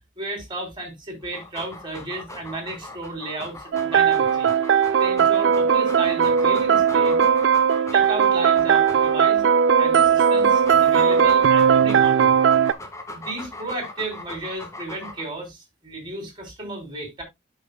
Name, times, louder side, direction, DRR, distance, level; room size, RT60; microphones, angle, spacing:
voice 1, 0.2-4.5 5.0-7.2 7.9-9.4 9.8-12.3 13.1-17.2, right 2 dB, 25° right, 3.2 m, -33 dB
Dog, 1.2-9.4 10.0-15.4, left 2 dB, 15° left, 1.4 m, -39 dB
sound 1, 3.7-12.7, right 7 dB, 65° right, 0.4 m, -18 dB
12.5 x 5.6 x 2.3 m
head